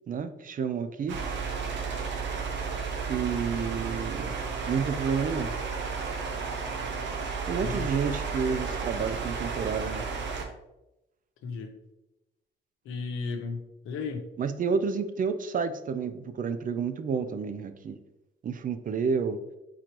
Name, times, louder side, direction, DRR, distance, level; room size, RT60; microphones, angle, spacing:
voice 1, 0.1-1.2 3.1-4.4 4.6-5.5 7.5-10.1 14.4-18.0 18.4-19.4, right 6 dB, 45° right, 11 dB, 0.4 m, -30 dB
sound 1, 1.1-10.4, right 5 dB, 65° right, 0.9 m, -33 dB
voice 2, 11.4-11.7 12.8-14.3, left 4 dB, 90° left, 4 dB, 0.8 m, -34 dB
4.5 x 3.8 x 3.0 m, 0.95 s
cardioid pair, 90°, 20 cm